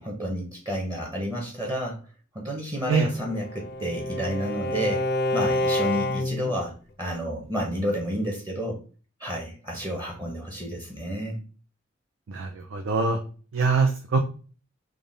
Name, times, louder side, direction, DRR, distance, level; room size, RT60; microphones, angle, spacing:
voice 1, 0.0-2.0 2.3-5.1 5.3-8.8 9.2-11.4, equal, 20° right, -1 dB, 0.7 m, -30 dB
Bowed string instrument, 3.0-6.6, left 1 dB, 55° left, 0.4 m, -28 dB
voice 2, 12.3-13.2 13.5-14.2, right 4 dB, 90° right, 3 dB, 0.5 m, -23 dB
3.6 x 2.1 x 3.7 m, 0.38 s
head